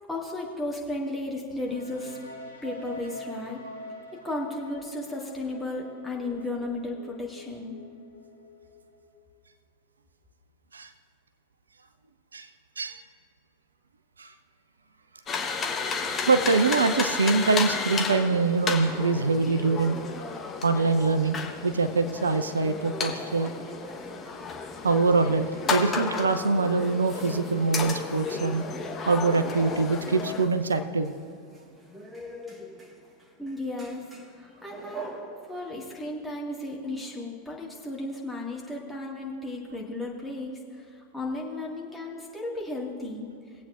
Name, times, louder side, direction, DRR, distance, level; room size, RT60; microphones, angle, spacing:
voice 1, 0.1-2.2 2.6-3.6 4.2-7.8 33.4-34.0 34.4-35.1 35.5-40.8 41.1-43.3, left 2 dB, 5° left, -4 dB, 1.9 m, -34 dB
sound 1, 1.7-9.4, left 1 dB, 90° left, 1.4 m, -45 dB
sound 2, 15.3-30.5, left 5 dB, 25° left, 1.2 m, -33 dB
voice 2, 16.3-20.0 20.6-23.5 24.8-28.6 29.1-31.1, right 3 dB, 75° right, 9 dB, 0.5 m, -24 dB
sound 3, 20.9-35.8, right 1 dB, 15° right, 1.5 m, -45 dB
20.5 x 8.4 x 2.5 m, 2.3 s
figure-of-eight pair, 90°, 0 cm